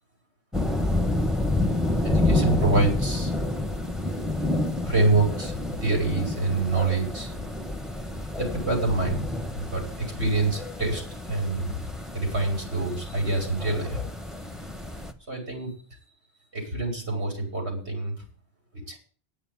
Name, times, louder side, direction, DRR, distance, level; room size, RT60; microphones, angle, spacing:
sound 1, 0.5-15.1, left 2 dB, ahead, 1.3 m, -29 dB
voice 1, 2.0-3.3 4.8-5.5 5.8-7.3 8.3-9.3 9.5-11.0 11.3-11.8 12.1-14.0 15.3-15.7 16.5-18.1 18.9-19.0, right 2 dB, 85° right, 0 dB, 5.9 m, -26 dB
9.9 x 8.6 x 9.4 m, 0.40 s
omnidirectional pair, 1.1 m